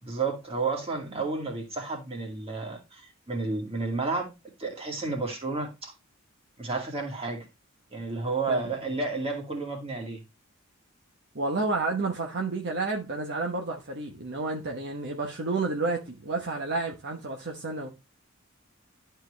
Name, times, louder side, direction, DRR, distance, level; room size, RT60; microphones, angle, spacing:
voice 1, 0.0-4.3 4.6-5.9 6.6-7.4 7.9-10.2, right 3 dB, 30° right, 2.3 m, -31 dB
voice 2, 11.3-17.9, right 3 dB, 55° right, 1.1 m, -30 dB
12.0 x 4.5 x 3.2 m
head